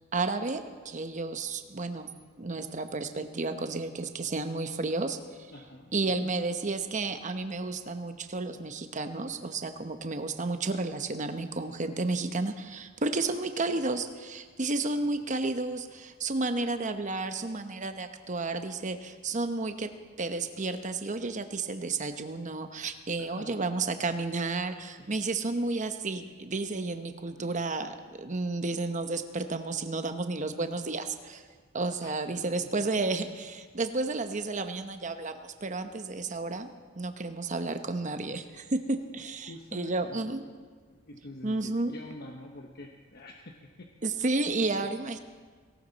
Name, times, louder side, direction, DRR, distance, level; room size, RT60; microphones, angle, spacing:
voice 1, 0.1-2.1 2.4-5.2 5.9-19.9 20.2-31.5 31.7-36.7 36.9-40.4 41.4-41.9 44.0-45.2, right 3 dB, 40° right, 8 dB, 0.9 m, -32 dB
voice 2, 5.5-6.3 14.8-14.9 15.3-15.5 23.2-24.0 25.0-25.2 27.4-27.5 32.0-32.2 39.4-40.4 40.9-43.9 44.4-44.9, left 2 dB, 55° left, 2 dB, 1.1 m, -47 dB
18.0 x 17.5 x 4.1 m, 1.5 s
head